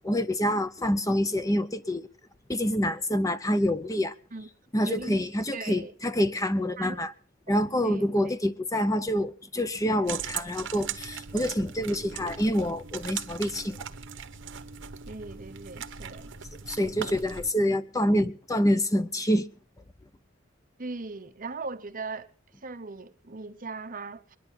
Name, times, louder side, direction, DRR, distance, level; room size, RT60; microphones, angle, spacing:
voice 1, 0.0-2.1 2.5-4.1 4.7-7.1 7.5-13.8 16.7-19.5, equal, 15° left, 0.7 m, -26 dB
voice 2, 4.8-5.2 5.5-5.9 6.8-7.0 7.5-8.4 15.1-16.3 20.8-22.3 22.6-24.4, right 3 dB, 40° right, 0.9 m, -39 dB
sound 1, 10.1-17.5, right 7 dB, 65° right, 1.0 m, -39 dB
22.0 x 11.0 x 5.6 m
head